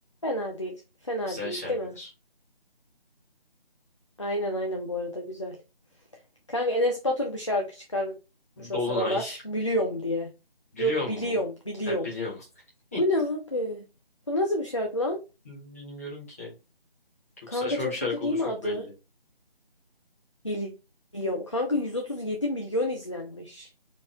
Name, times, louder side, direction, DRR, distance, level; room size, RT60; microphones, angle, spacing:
voice 1, 0.2-0.7 1.0-2.0 4.2-5.6 6.5-8.1 8.6-10.3 10.8-12.1 13.0-13.8 14.3-15.2 17.5-17.9 18.2-18.9 20.4-20.7 21.1-23.7, left 1 dB, 30° left, 1 dB, 0.6 m, -29 dB
voice 2, 1.3-2.1 8.6-9.4 10.7-11.3 11.9-12.4 12.9-13.0 15.4-16.5 17.5-18.9, left 3 dB, 15° left, -5 dB, 1.2 m, -34 dB
4.4 x 3.0 x 3.5 m, 0.27 s
figure-of-eight pair, 160°, 30 cm